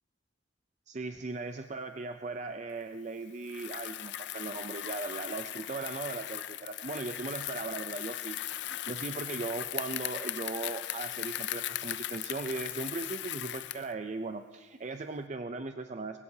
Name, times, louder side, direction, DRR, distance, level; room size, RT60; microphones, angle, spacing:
voice 1, 0.9-8.4 8.7-16.2, right 3 dB, 40° right, 7 dB, 0.5 m, -38 dB
Bicycle, 3.4-13.9, left 13 dB, 65° left, 0.4 m, -38 dB
22.0 x 16.0 x 2.8 m, 1.3 s
head